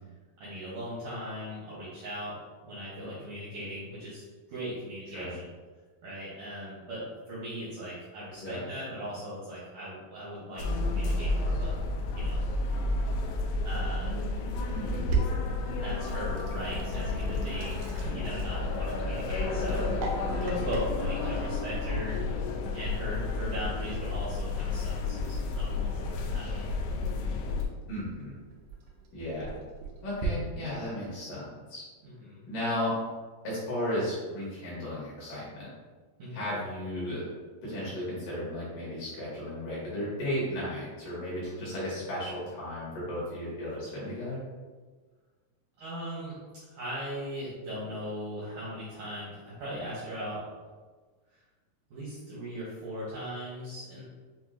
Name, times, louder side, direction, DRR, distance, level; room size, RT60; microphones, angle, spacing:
voice 1, 0.4-2.4 2.6-5.4 6.0-11.7 12.1-12.4 13.6-14.2 15.8-19.8 20.3-22.2 22.7-26.7 32.0-32.4 36.2-36.5 45.8-46.4 46.7-50.4 51.9-54.0, equal, 75° right, -8 dB, 1.9 m, -38 dB
sound 1, 10.6-27.7, left 3 dB, 90° left, 2.8 m, -31 dB
voice 2, 14.7-15.1 19.5-20.1 27.9-28.4 29.1-29.5 30.0-31.8 32.5-33.0 33.4-35.7 36.3-37.3 37.6-44.4, left 1 dB, 65° left, -8 dB, 2.5 m, -34 dB
Sink (filling or washing), 14.8-30.3, right 3 dB, 90° right, 2.0 m, -40 dB
7.2 x 2.5 x 2.4 m, 1.4 s
omnidirectional pair, 4.9 m